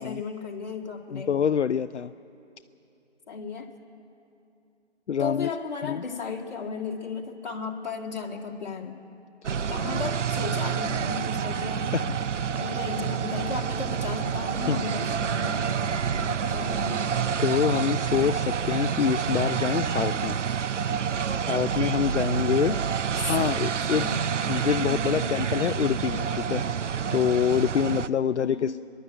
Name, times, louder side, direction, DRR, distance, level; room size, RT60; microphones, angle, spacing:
voice 1, 0.0-1.4 3.3-3.7 5.2-9.0 9.7-11.9 12.5-17.2 23.2-24.3 24.8-25.3 28.4-28.8, left 5 dB, 40° left, -1 dB, 2.1 m, -35 dB
voice 2, 1.1-2.1 5.1-5.5 5.8-6.0 11.9-12.1 14.7-14.8 17.4-20.4 21.3-22.8 23.2-24.1 24.5-26.6 27.1-28.7, left 8 dB, 75° left, 11 dB, 0.5 m, -26 dB
sound 1, 9.4-28.1, right 7 dB, 85° right, 0.6 m, -28 dB
29.5 x 11.5 x 7.8 m, 2.7 s
figure-of-eight pair, 165°, 35 cm